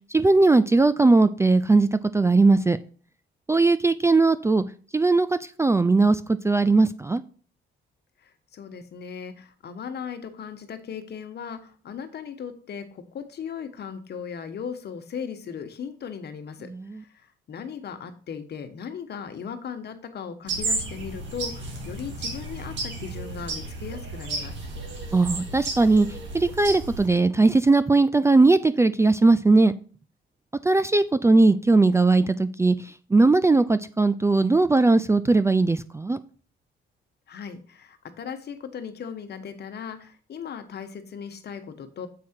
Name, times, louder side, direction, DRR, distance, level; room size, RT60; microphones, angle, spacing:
voice 1, 0.1-2.8 3.5-4.6 4.9-7.2 16.7-17.0 25.1-26.1 26.3-29.7 30.6-36.2, right 3 dB, 15° right, 13 dB, 0.4 m, -19 dB
voice 2, 8.2-24.5 37.3-42.1, left 7 dB, 55° left, 7 dB, 1.1 m, -37 dB
sound 1, 20.5-27.1, right 3 dB, 65° right, 2.2 m, -33 dB
7.5 x 4.8 x 4.4 m, 0.41 s
cardioid pair, 90°, 20 cm